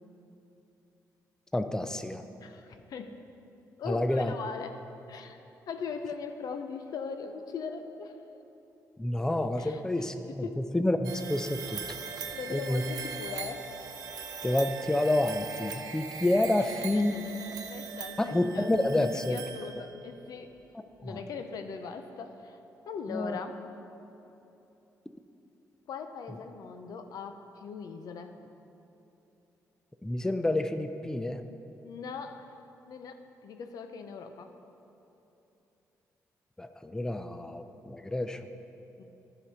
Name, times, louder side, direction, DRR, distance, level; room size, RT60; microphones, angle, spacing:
voice 1, 1.5-2.2 3.9-4.3 9.0-12.0 12.5-12.8 14.4-17.1 18.2-19.4 21.0-21.2 23.1-23.4 30.0-31.4 36.6-38.4, left 1 dB, 10° left, 9 dB, 0.4 m, -29 dB
voice 2, 2.4-3.2 3.8-4.8 5.1-5.4 5.7-8.2 9.6-9.8 10.3-10.6 12.0-13.7 16.6-18.7 19.0-20.5 21.0-22.6 22.9-23.5 25.9-28.3 31.8-32.5 32.8-34.5 39.0-39.1, left 5 dB, 70° left, 7 dB, 0.6 m, -40 dB
sound 1, 11.0-20.1, right 6 dB, 70° right, 0.8 m, -40 dB
11.0 x 5.1 x 5.5 m, 2.9 s
cardioid pair, 75°, 7 cm